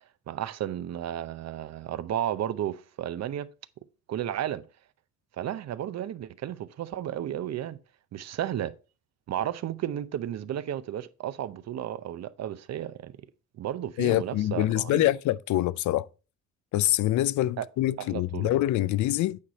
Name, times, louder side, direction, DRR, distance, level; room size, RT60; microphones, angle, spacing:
voice 1, 0.3-3.5 4.1-4.6 5.4-7.8 8.1-8.7 9.3-13.1 13.6-15.1 17.6-17.7 18.0-18.5, right 11 dB, 60° right, 0.7 m, -33 dB
voice 2, 14.0-16.1 16.7-19.4, left 15 dB, 75° left, 0.5 m, -25 dB
8.6 x 4.9 x 4.2 m
cardioid pair, 90°, 30 cm